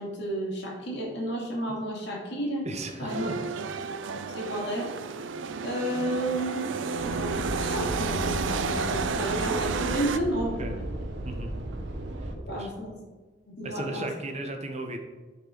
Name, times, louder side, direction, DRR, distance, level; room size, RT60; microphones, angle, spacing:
voice 1, 0.0-2.7 3.0-3.3 4.3-4.9 5.6-6.7 7.0-10.8 12.5-12.9 13.5-14.1, right 1 dB, 65° left, -2 dB, 2.3 m, -32 dB
voice 2, 2.6-3.3 10.6-10.8 11.2-11.5 12.2-12.7 13.6-15.0, right 1 dB, 35° right, 4 dB, 1.0 m, -36 dB
sound 1, 3.1-10.2, right 4 dB, 85° right, 0.5 m, -31 dB
sound 2, 7.0-12.4, right 1 dB, 65° right, 1.0 m, -35 dB
9.6 x 4.5 x 5.1 m, 1.3 s
head